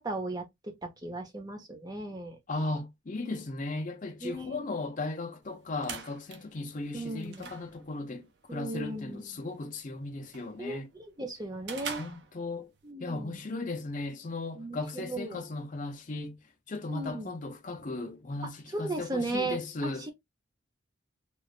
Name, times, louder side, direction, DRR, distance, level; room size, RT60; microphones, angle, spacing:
voice 1, 0.0-2.4 4.2-4.6 6.9-7.5 8.5-9.2 10.6-10.8 11.2-12.0 12.8-13.4 14.5-15.4 16.9-17.3 18.7-20.1, right 2 dB, 20° right, 0.7 m, -36 dB
voice 2, 2.5-8.2 8.5-10.9 12.0-12.7 13.0-16.4 16.7-20.1, left 2 dB, 40° left, 0.6 m, -36 dB
sound 1, 5.4-12.9, right 6 dB, 55° right, 0.6 m, -46 dB
3.0 x 2.4 x 2.4 m
head